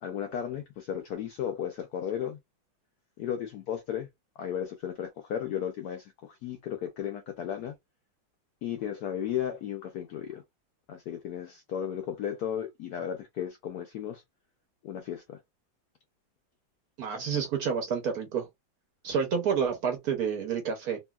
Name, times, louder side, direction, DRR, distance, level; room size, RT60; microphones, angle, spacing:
voice 1, 0.0-2.4 3.2-4.1 4.4-7.7 8.6-10.4 10.9-14.2 14.8-15.4, left 9 dB, 75° left, 0.8 m, -34 dB
voice 2, 17.0-18.5 19.0-21.0, right 6 dB, 65° right, 1.0 m, -29 dB
2.9 x 2.7 x 2.2 m
omnidirectional pair, 2.1 m